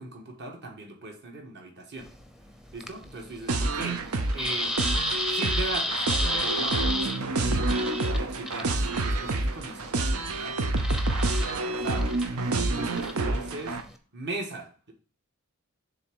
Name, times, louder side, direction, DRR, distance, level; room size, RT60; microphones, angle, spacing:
voice 1, 0.0-2.1 2.7-4.0 4.3-4.7 5.3-12.1 12.7-13.8 14.1-14.9, right 2 dB, 50° right, 2 dB, 1.5 m, -39 dB
sound 1, 2.0-14.0, left 1 dB, ahead, 0.6 m, -34 dB
sound 2, 3.5-13.8, right 2 dB, 85° right, 0.8 m, -28 dB
7.0 x 3.5 x 6.2 m, 0.39 s
head